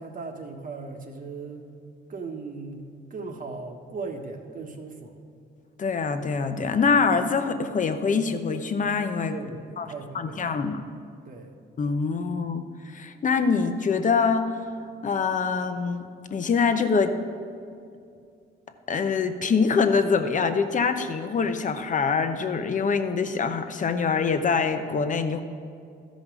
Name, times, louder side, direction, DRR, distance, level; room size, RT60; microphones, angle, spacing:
voice 1, 0.0-1.6 2.1-2.8 3.1-5.2 9.3-10.7 11.2-11.5, right 4 dB, 45° right, 4 dB, 1.2 m, -38 dB
voice 2, 5.8-9.4 9.8-9.9 10.1-10.8 11.8-12.6 12.9-14.6 15.0-17.1 18.9-25.4, left 5 dB, 40° left, 8 dB, 0.8 m, -24 dB
13.5 x 5.2 x 6.2 m, 2.4 s
cardioid pair, 90°, 20 cm